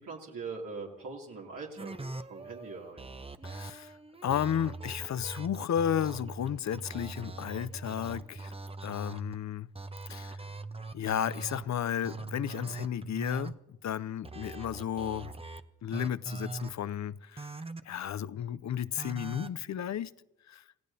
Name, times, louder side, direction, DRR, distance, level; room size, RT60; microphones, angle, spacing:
voice 1, 0.0-3.1, right 4 dB, 75° right, 2.6 m, -42 dB
sound 1, 1.8-9.3 9.8-11.7 12.0-13.5 14.2-15.6 15.9-16.7 17.4-17.8 19.0-19.5, right 3 dB, 20° right, 0.8 m, -41 dB
voice 2, 3.4-8.5 8.8-9.7 10.1-10.4 10.9-15.3 15.8-17.6 17.8-20.1 20.5-20.6, left 9 dB, 60° left, 0.5 m, -33 dB
28.0 x 15.5 x 2.8 m
cardioid pair, 60°, 33 cm